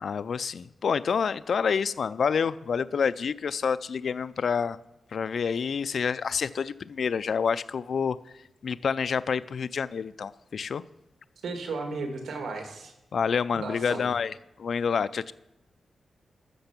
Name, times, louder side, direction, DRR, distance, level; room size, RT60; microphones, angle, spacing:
voice 1, 0.0-4.8 5.1-8.2 8.6-10.8 13.1-14.3 14.6-15.3, left 6 dB, 65° left, 0.4 m, -28 dB
voice 2, 11.4-12.9 13.5-14.1, right 3 dB, 90° right, 1.9 m, -34 dB
13.5 x 6.8 x 5.9 m
wide cardioid pair, 100°, 0 cm